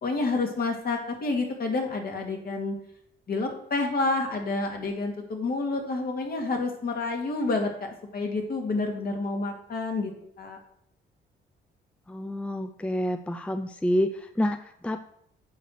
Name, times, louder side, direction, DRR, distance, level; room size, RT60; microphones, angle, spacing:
voice 1, 0.0-2.8 3.3-10.1 10.4-10.6, left 3 dB, 50° left, 2 dB, 2.2 m, -29 dB
voice 2, 12.1-15.0, left 1 dB, 5° left, 9 dB, 0.5 m, -28 dB
7.9 x 4.9 x 6.5 m, 0.70 s
cardioid pair, 90°, 20 cm